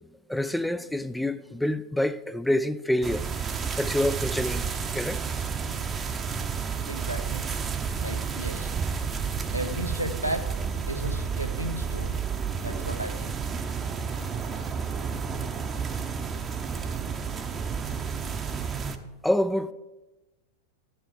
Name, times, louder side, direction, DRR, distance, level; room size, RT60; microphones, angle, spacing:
voice 1, 0.3-3.3 3.8-4.7 4.9-5.2 19.2-19.7, left 1 dB, 5° left, 0.3 m, -27 dB
sound 1, 3.0-19.0, right 6 dB, 20° right, 0.7 m, -31 dB
voice 2, 6.9-7.5 8.0-8.7 9.5-10.4 10.9-12.2 12.6-13.3, equal, 85° right, 0.8 m, -34 dB
11.5 x 5.5 x 6.6 m
figure-of-eight pair, 90°, 0 cm